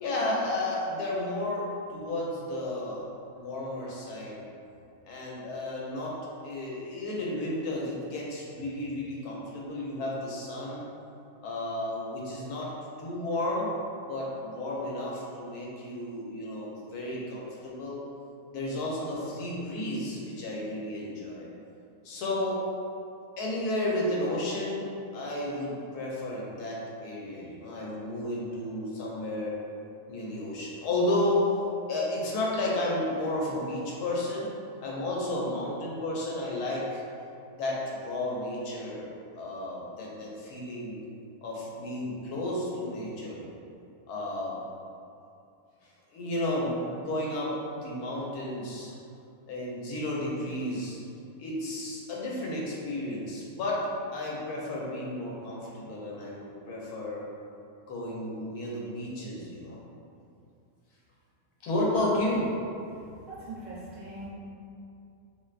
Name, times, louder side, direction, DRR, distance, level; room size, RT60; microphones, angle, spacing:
voice 1, 0.0-3.0 3.3-4.4 5.1-6.2 6.4-10.8 11.4-12.7 13.0-13.7 14.1-18.0 18.5-21.5 22.0-22.6 23.4-29.5 30.1-31.5 31.9-34.5 34.8-37.0 37.6-39.1 39.3-41.0 41.4-43.5 44.1-44.6 46.1-48.9 49.5-51.0 51.4-53.9 54.1-57.3 57.9-59.8 61.6-62.5, left 1 dB, 80° left, -4 dB, 1.2 m, -32 dB
voice 2, 63.3-64.3, right 2 dB, 65° right, -7 dB, 0.9 m, -41 dB
3.2 x 2.8 x 2.4 m, 2.5 s
omnidirectional pair, 1.6 m